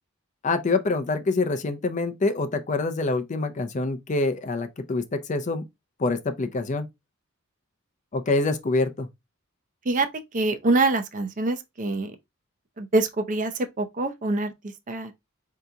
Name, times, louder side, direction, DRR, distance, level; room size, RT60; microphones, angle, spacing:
voice 1, 0.4-5.6 6.0-6.9 8.1-9.1, left 3 dB, 35° left, 0.5 m, -26 dB
voice 2, 10.3-12.1 12.8-14.5 14.9-15.1, right 2 dB, 35° right, 0.6 m, -25 dB
3.9 x 2.8 x 3.4 m
head